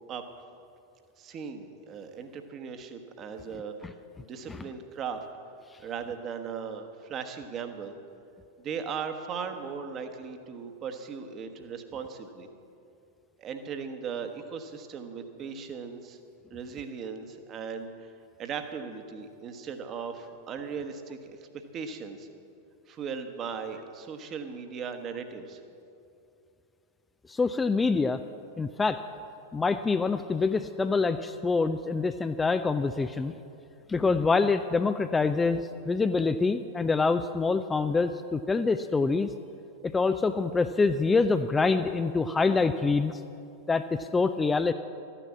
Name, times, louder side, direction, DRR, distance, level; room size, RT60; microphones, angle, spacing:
voice 1, 1.2-5.3 5.8-7.9 8.6-12.5 13.4-16.2 16.5-18.1 18.4-22.3 22.9-25.6, right 6 dB, 30° right, 7 dB, 1.2 m, -38 dB
voice 2, 27.3-28.2 28.6-29.0 29.5-33.3 33.9-35.6 35.8-39.3 39.8-43.2 43.7-44.7, left 4 dB, 15° left, 9 dB, 0.4 m, -25 dB
13.5 x 10.0 x 7.2 m, 2.6 s
figure-of-eight pair, 90°, 0 cm